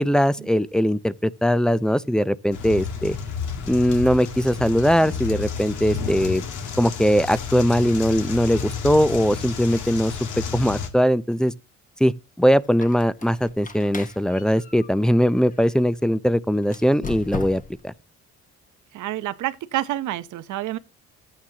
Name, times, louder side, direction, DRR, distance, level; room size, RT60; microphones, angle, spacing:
voice 1, 0.0-3.2 3.7-6.4 6.8-10.1 10.5-11.5 12.0-12.1 12.4-17.9, equal, ahead, 0.5 m, -20 dB
sound 1, 2.5-10.9, left 6 dB, 80° left, 1.9 m, -31 dB
Squeak, 12.6-15.8 16.6-17.9, left 4 dB, 25° left, 1.2 m, -38 dB
voice 2, 18.9-20.8, right 14 dB, 80° right, 0.8 m, -28 dB
13.0 x 8.8 x 2.9 m
cardioid pair, 90°, 30 cm